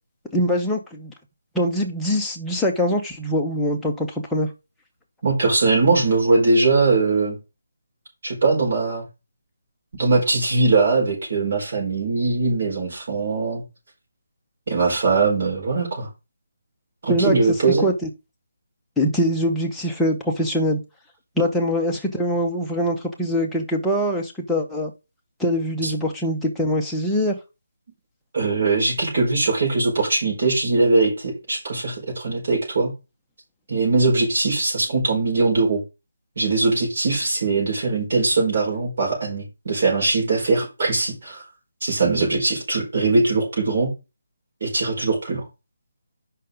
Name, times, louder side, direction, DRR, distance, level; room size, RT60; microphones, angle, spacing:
voice 1, 0.3-1.1 1.5-4.5 17.1-17.3 17.8-18.1 19.0-20.8 21.4-24.9 25.4-27.4, equal, ahead, 0.8 m, -23 dB
voice 2, 5.2-7.4 8.2-9.0 9.9-13.6 14.7-16.1 17.0-17.9 28.3-32.9 33.7-35.8 36.3-41.4 41.8-43.9 44.6-45.5, right 3 dB, 40° right, 5.0 m, -21 dB
8.1 x 5.6 x 3.9 m
hypercardioid pair, 175°, 0 cm